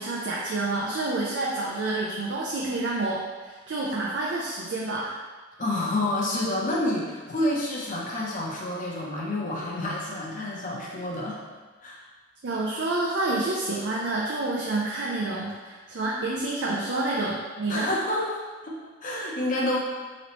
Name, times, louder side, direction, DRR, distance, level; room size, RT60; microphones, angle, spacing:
voice 1, 0.0-5.2 12.4-17.9, right 2 dB, 75° right, -4 dB, 0.5 m, -28 dB
voice 2, 5.6-11.4 11.8-12.0 17.7-19.8, left 1 dB, 45° left, -4 dB, 0.7 m, -29 dB
4.1 x 3.1 x 2.9 m, 1.3 s
head